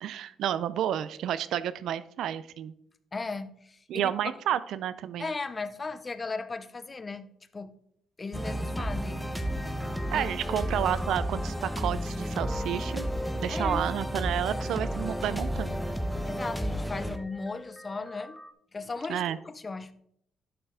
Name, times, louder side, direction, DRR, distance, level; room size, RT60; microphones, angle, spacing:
voice 1, 0.0-2.7 3.9-5.3 10.1-13.1 13.4-15.8 19.1-19.4, right 10 dB, 80° right, 16 dB, 0.4 m, -31 dB
voice 2, 3.1-4.1 5.2-7.3 7.5-7.7 8.2-9.2 10.1-10.7 13.5-13.8 16.2-18.4 18.7-19.9, left 3 dB, 30° left, 14 dB, 0.6 m, -36 dB
sound 1, 8.3-18.5, equal, ahead, 0.8 m, -32 dB
11.5 x 5.4 x 3.6 m, 0.70 s
cardioid pair, 90°, 0 cm